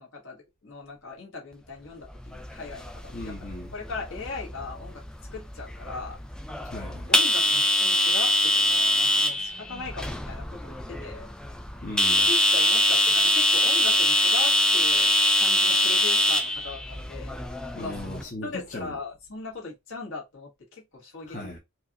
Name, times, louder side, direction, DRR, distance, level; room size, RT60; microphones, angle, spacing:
voice 1, 0.0-3.3 3.7-5.0 5.3-6.2 6.8-11.3 12.3-15.1 15.4-17.4 17.8-18.0 18.4-21.4, left 3 dB, 60° left, 1.6 m, -39 dB
sound 1, 2.1-18.2, left 1 dB, 5° left, 0.3 m, -24 dB
voice 2, 3.1-3.7 6.7-7.1 11.8-12.3 17.7-18.9 21.2-21.6, left 2 dB, 35° left, 1.1 m, -37 dB
4.5 x 2.4 x 2.9 m
head